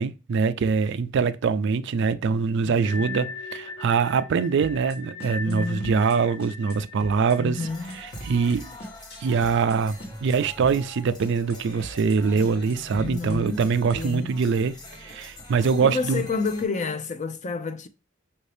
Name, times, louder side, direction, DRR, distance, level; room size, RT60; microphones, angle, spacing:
voice 1, 0.0-7.6 7.9-8.8 9.2-16.2, right 5 dB, 60° right, 0.4 m, -24 dB
sound 1, 2.8-9.7 9.9-10.1 10.6-16.0, left 4 dB, 80° left, 1.3 m, -42 dB
sound 2, 4.6-5.0 5.2-5.6 5.8-6.2 6.4-6.8 7.0-7.4 7.6-9.8 10.0-10.4 10.6-11.0 11.2-11.6 11.8-12.2 12.4-14.1, right 1 dB, 55° left, 1.1 m, -40 dB
voice 2, 5.4-6.0 7.4-8.0 10.3-10.4 12.9-13.6 13.9-14.4 15.8-17.9, left 4 dB, 35° left, 0.5 m, -30 dB
sound 3, 7.6-16.7, left 1 dB, 20° left, 1.1 m, -45 dB
5.6 x 2.6 x 3.3 m
head